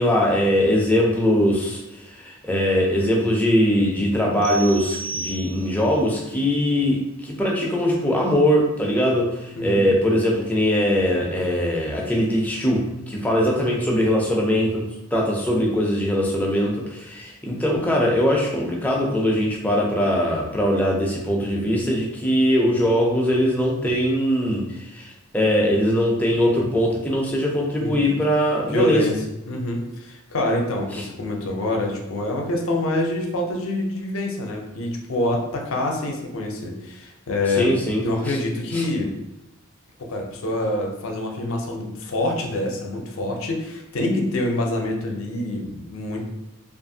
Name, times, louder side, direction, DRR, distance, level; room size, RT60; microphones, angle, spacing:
voice 1, 0.0-29.0 30.9-31.0 37.6-38.4 38.7-38.9, equal, 5° left, -1 dB, 0.3 m, -21 dB
sound 1, 4.4-5.9, right 3 dB, 60° right, 0.5 m, -34 dB
voice 2, 27.8-28.2 28.6-29.1 29.5-37.7 38.0-39.1 40.0-46.2, left 1 dB, 70° left, 1 dB, 0.5 m, -26 dB
2.6 x 2.4 x 2.6 m, 0.92 s
head